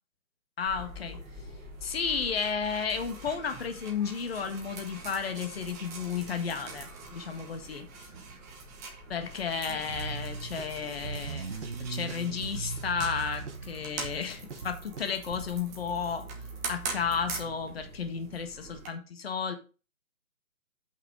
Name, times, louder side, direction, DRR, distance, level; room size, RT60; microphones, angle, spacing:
voice 1, 0.6-1.2 1.8-7.9 9.1-16.3 16.7-19.5, left 6 dB, 45° left, 1.8 m, -33 dB
sound 1, 0.7-18.9, right 3 dB, 10° right, 1.1 m, -43 dB
sound 2, 9.9-15.6, right 4 dB, 55° right, 1.4 m, -39 dB
8.1 x 5.8 x 5.0 m
figure-of-eight pair, 150°, 43 cm